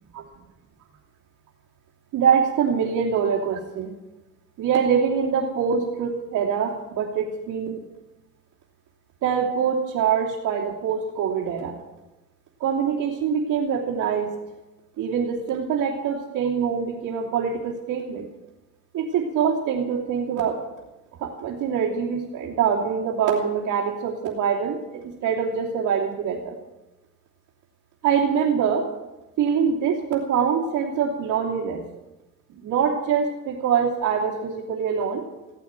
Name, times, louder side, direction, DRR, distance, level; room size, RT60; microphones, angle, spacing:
voice 1, 2.1-3.9 4.6-7.8 9.2-11.7 12.6-14.3 15.0-18.3 18.9-20.6 21.2-26.5 28.0-28.8 29.4-31.8 32.6-35.2, right 7 dB, 80° right, -6 dB, 3.1 m, -24 dB
17.0 x 9.4 x 9.0 m, 1.0 s
cardioid pair, 90°, 30 cm